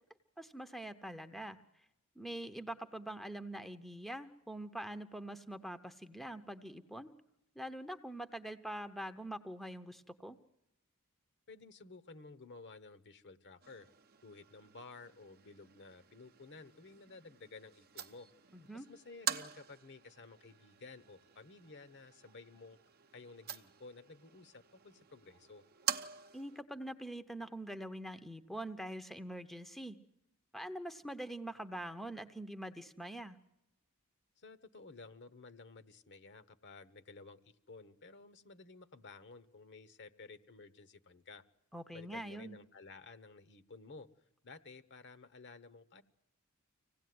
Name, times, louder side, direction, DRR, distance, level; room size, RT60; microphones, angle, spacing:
voice 1, 0.4-1.6 2.2-7.1 7.5-10.4 18.5-18.9 26.3-30.0 30.5-33.4 41.7-42.6, right 1 dB, ahead, 10 dB, 0.8 m, -44 dB
voice 2, 11.5-13.9 14.2-18.3 18.7-22.8 23.1-25.6 34.4-41.4 41.9-44.1 44.4-46.0, left 3 dB, 50° left, 13 dB, 1.1 m, -54 dB
sound 1, 13.6-26.6, right 9 dB, 45° right, 0.8 m, -46 dB
25.5 x 17.5 x 9.5 m, 0.90 s
head